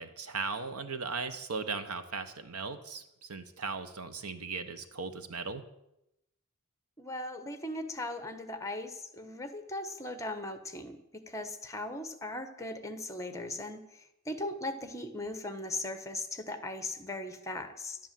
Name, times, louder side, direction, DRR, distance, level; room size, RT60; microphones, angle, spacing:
voice 1, 0.0-5.6, right 4 dB, 75° right, 10 dB, 1.2 m, -37 dB
voice 2, 7.0-11.0 11.3-18.0, left 2 dB, 15° left, 8 dB, 1.3 m, -38 dB
12.5 x 11.0 x 7.6 m, 0.85 s
head